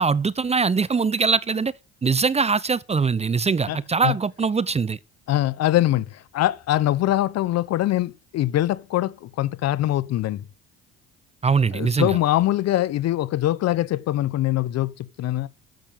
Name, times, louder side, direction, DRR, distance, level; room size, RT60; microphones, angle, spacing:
voice 1, 0.0-1.7 2.0-5.0 11.4-12.2, right 5 dB, 20° right, 0.7 m, -22 dB
voice 2, 5.3-10.5 11.7-15.5, left 14 dB, 60° left, 1.2 m, -23 dB
13.0 x 7.7 x 7.5 m
hypercardioid pair, 65°, 29 cm